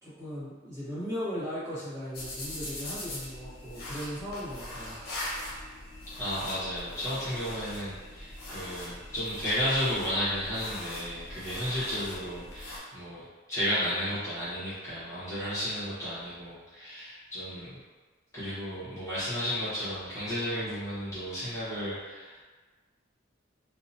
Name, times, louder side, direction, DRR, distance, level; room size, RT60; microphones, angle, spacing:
voice 1, 0.0-5.0, equal, 15° right, -12 dB, 1.0 m, -37 dB
sound 1, 2.1-12.8, left 1 dB, 50° left, 0.7 m, -41 dB
voice 2, 6.2-17.7 18.3-22.4, equal, 15° left, -14 dB, 1.0 m, -33 dB
2.8 x 2.1 x 2.6 m, 1.4 s
head